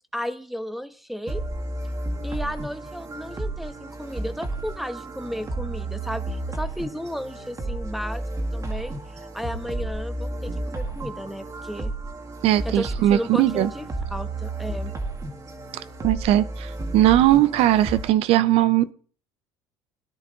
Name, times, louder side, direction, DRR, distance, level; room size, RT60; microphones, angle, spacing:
voice 1, 0.1-1.4 2.2-8.2 8.5-11.9 12.6-13.8 14.1-14.9, equal, ahead, 1.1 m, -34 dB
sound 1, 1.3-18.1, right 2 dB, 30° right, 2.3 m, -32 dB
voice 2, 12.4-13.7 15.7-18.9, right 13 dB, 60° right, 0.7 m, -19 dB
17.5 x 10.5 x 4.0 m
supercardioid pair, 85°, 11 cm